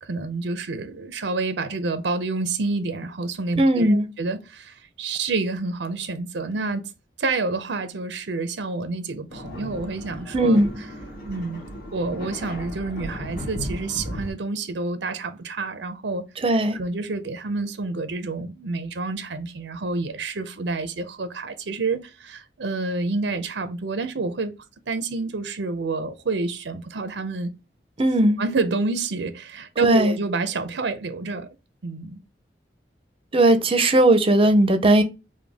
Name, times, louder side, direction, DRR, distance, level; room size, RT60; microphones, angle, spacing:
voice 1, 0.0-6.9 7.2-10.6 11.3-16.2 16.7-24.5 24.9-27.5 28.4-31.5 31.8-32.2, right 3 dB, 80° right, 0.6 m, -28 dB
voice 2, 3.6-4.1 10.3-10.7 16.4-16.8 28.0-28.4 29.8-30.2 33.3-35.0, right 1 dB, 30° right, 0.6 m, -17 dB
sound 1, 9.3-14.3, equal, 50° left, 2.1 m, -35 dB
5.0 x 2.3 x 3.4 m
head